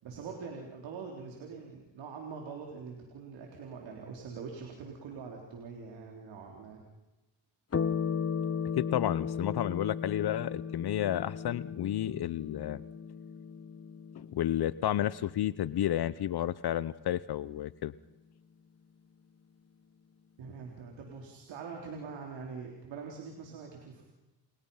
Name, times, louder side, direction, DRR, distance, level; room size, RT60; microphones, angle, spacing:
voice 1, 0.0-6.8 20.4-24.0, right 5 dB, 85° right, 0 dB, 3.9 m, -44 dB
sound 1, 7.7-16.6, left 6 dB, 35° left, 1.4 m, -36 dB
voice 2, 8.8-12.8 14.1-17.9, left 12 dB, 60° left, 17 dB, 0.8 m, -31 dB
30.0 x 29.5 x 5.6 m, 1.1 s
cardioid pair, 85°, 43 cm